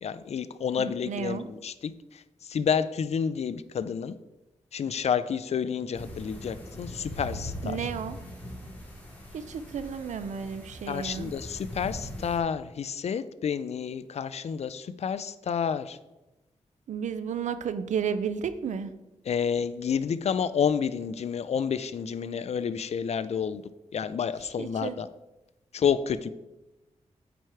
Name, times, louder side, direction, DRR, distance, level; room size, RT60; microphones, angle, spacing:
voice 1, 0.0-4.2 4.7-7.9 10.9-16.0 19.3-23.6 23.9-25.1 25.7-26.3, left 7 dB, 60° left, 14 dB, 0.5 m, -30 dB
voice 2, 0.8-1.5 7.6-8.2 9.3-11.3 16.9-18.9 24.6-25.0, right 7 dB, 85° right, 12 dB, 0.6 m, -32 dB
sound 1, 5.9-12.4, left 1 dB, 10° left, 2.4 m, -40 dB
9.0 x 4.6 x 4.8 m, 1.0 s
cardioid pair, 85°, 12 cm